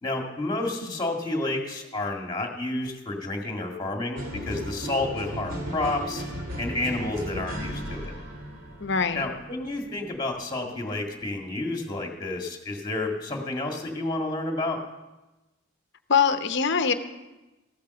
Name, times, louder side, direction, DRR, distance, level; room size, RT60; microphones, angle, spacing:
voice 1, 0.0-6.2 6.6-8.1 9.1-14.8, left 2 dB, 20° left, 1 dB, 1.9 m, -30 dB
sound 1, 4.2-10.1, equal, 60° right, 2.5 m, -36 dB
voice 2, 8.8-9.3 16.1-16.9, left 6 dB, 55° left, 9 dB, 0.8 m, -23 dB
14.5 x 8.6 x 7.0 m, 1.0 s
head